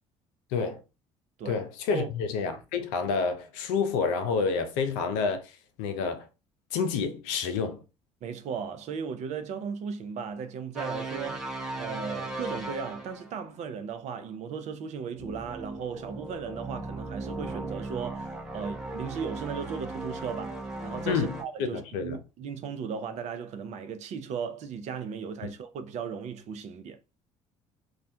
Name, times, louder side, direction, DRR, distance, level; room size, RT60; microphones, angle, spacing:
voice 1, 0.5-0.8 1.5-6.3 6.7-7.8 21.1-21.3 21.6-22.2, left 5 dB, 65° left, 0.5 m, -29 dB
voice 2, 8.2-27.0, right 6 dB, 50° right, 0.5 m, -36 dB
sound 1, 10.8-13.4 15.2-21.4, right 2 dB, 5° right, 0.7 m, -37 dB
2.3 x 2.1 x 2.6 m
hypercardioid pair, 60°, 15 cm